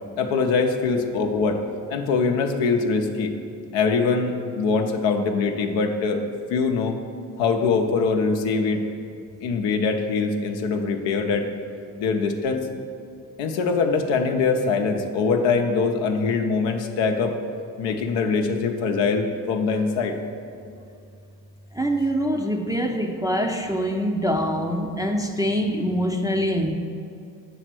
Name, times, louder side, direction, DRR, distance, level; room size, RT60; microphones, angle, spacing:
voice 1, 0.2-1.6 1.9-3.3 3.7-6.2 6.5-7.0 7.4-8.8 9.4-11.5 12.0-12.7 13.4-17.3 17.8-20.2, left 4 dB, 70° left, 4 dB, 0.7 m, -23 dB
voice 2, 21.7-26.7, equal, 10° right, 2 dB, 0.5 m, -24 dB
7.0 x 3.2 x 6.1 m, 2.5 s
hypercardioid pair, 45°, 46 cm